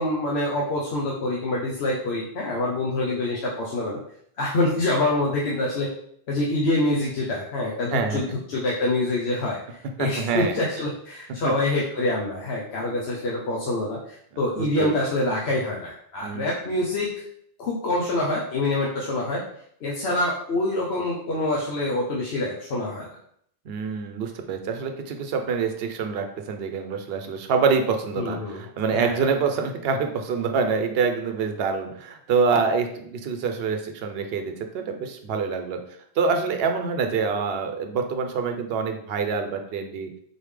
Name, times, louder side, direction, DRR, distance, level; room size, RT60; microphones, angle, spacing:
voice 1, 0.0-4.0 4.4-5.9 6.3-17.1 17.6-19.4 19.8-23.1 28.2-28.6 28.9-29.2, left 2 dB, 75° left, -4 dB, 1.0 m, -26 dB
voice 2, 7.9-8.4 10.0-10.6 14.5-14.9 16.2-16.5 23.7-35.8 36.2-40.1, right 5 dB, 70° right, 6 dB, 0.8 m, -26 dB
4.2 x 3.5 x 3.2 m, 0.68 s
omnidirectional pair, 1.1 m